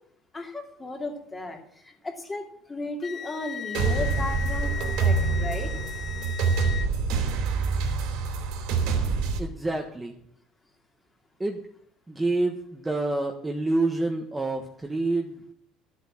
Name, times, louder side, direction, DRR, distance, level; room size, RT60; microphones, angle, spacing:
voice 1, 0.3-5.7, left 2 dB, 15° left, 2 dB, 2.8 m, -35 dB
Wind instrument woodwind instrument, 3.0-6.9, left 7 dB, 35° left, 0.6 m, -36 dB
sound 1, 3.7-9.4, right 4 dB, 80° right, 3.0 m, -26 dB
voice 2, 9.4-10.2 11.4-11.6 12.1-15.4, right 2 dB, 10° right, 2 dB, 1.3 m, -27 dB
13.0 x 8.2 x 7.3 m, 0.66 s
cardioid pair, 135°, 0 cm